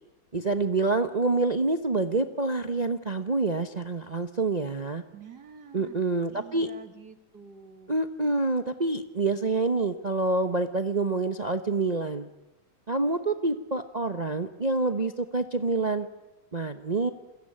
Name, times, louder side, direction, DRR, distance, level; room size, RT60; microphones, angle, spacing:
voice 1, 0.3-5.0 5.7-6.7 7.9-12.3 12.9-16.1 16.5-17.1, right 3 dB, 30° right, 9 dB, 0.9 m, -27 dB
voice 2, 5.1-6.0 6.3-7.9, right 6 dB, 55° right, 9 dB, 2.5 m, -47 dB
28.5 x 22.5 x 8.9 m, 1.0 s
omnidirectional pair, 2.1 m